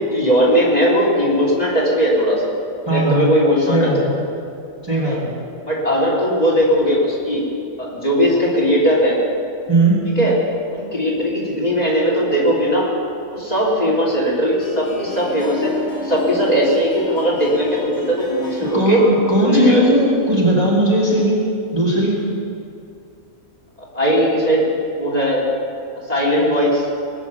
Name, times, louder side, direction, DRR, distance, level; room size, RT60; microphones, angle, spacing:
voice 1, 0.1-2.4 2.8-4.1 5.0-5.2 5.6-7.4 7.8-9.2 10.2-10.4 10.7-12.9 13.3-15.7 16.0-19.0 19.4-19.8 23.9-25.4 26.1-26.9, equal, 30° left, -6 dB, 3.5 m, -18 dB
voice 2, 2.9-3.3 3.7-4.2 4.8-5.4 9.7-10.0 18.7-21.5 21.7-22.1, right 1 dB, 15° right, -5 dB, 2.5 m, -17 dB
Harp, 14.3-20.8, left 4 dB, 55° left, 2.5 m, -31 dB
20.0 x 9.5 x 7.1 m, 2.5 s
omnidirectional pair, 1.5 m